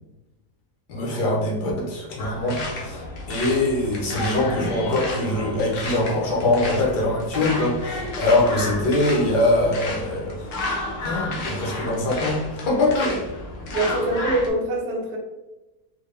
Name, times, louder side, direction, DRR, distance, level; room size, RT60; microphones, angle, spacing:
voice 1, 0.9-10.5 11.0-12.4 12.7-13.2, left 2 dB, 85° left, -3 dB, 1.6 m, -23 dB
sound 1, 2.2-14.5, left 2 dB, 60° left, 0.9 m, -32 dB
voice 2, 13.7-15.2, right 1 dB, 50° right, -1 dB, 0.8 m, -24 dB
4.1 x 2.1 x 3.2 m, 1.1 s
omnidirectional pair, 1.7 m